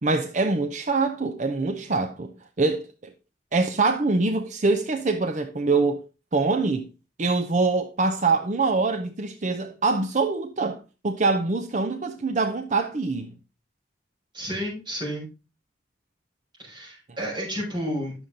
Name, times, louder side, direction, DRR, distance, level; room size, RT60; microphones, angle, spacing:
voice 1, 0.0-2.9 3.5-6.0 6.3-6.9 7.2-10.8 11.0-13.3, right 3 dB, 40° right, 0.7 m, -24 dB
voice 2, 14.3-15.3 16.6-18.1, equal, 25° right, 6.2 m, -31 dB
9.7 x 7.0 x 3.8 m
head